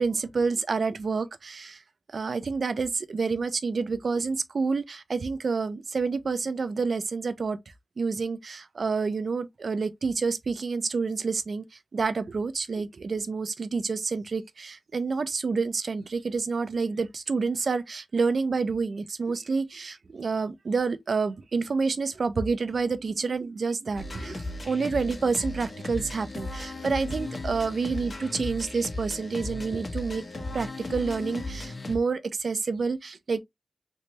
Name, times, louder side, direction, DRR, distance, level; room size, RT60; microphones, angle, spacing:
voice 1, 0.0-1.8 2.1-7.6 8.0-33.4, right 4 dB, 70° right, 0.5 m, -28 dB
sound 1, 24.0-32.0, left 2 dB, 45° left, 1.2 m, -36 dB
3.2 x 3.1 x 2.8 m
wide cardioid pair, 100°, 0 cm